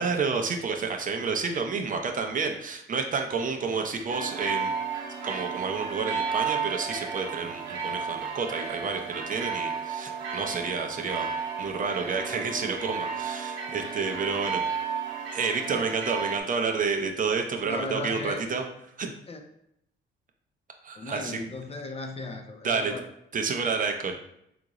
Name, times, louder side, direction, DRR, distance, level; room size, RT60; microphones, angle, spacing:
voice 1, 0.0-4.7 5.2-11.3 11.6-14.6 15.3-18.6 19.0-19.1 20.8-21.4 22.6-22.9 23.3-24.2, right 5 dB, 40° right, 4 dB, 0.5 m, -29 dB
sound 1, 4.1-16.4, right 6 dB, 65° right, 0.9 m, -33 dB
voice 2, 17.6-18.4 19.3-19.4 21.0-23.0, left 3 dB, 30° left, 4 dB, 0.5 m, -36 dB
3.7 x 2.4 x 2.9 m, 0.76 s
cardioid pair, 90°, 20 cm